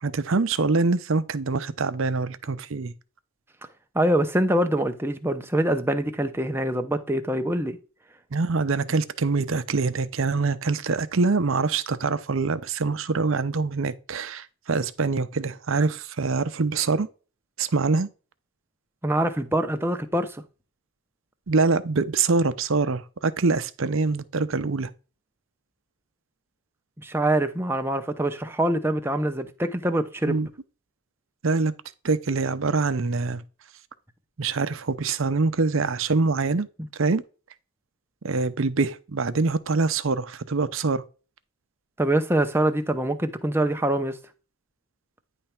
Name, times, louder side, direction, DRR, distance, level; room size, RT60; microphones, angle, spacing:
voice 1, 0.0-2.9 8.3-17.1 17.6-18.1 21.5-24.9 30.2-30.5 31.4-31.7 32.0-33.4 34.4-36.7 37.0-37.2 38.2-41.0, right 4 dB, 60° right, 0.6 m, -24 dB
voice 2, 3.9-7.8 19.0-20.4 27.0-30.4 42.0-44.2, right 1 dB, 10° right, 0.7 m, -24 dB
9.9 x 3.3 x 5.8 m
head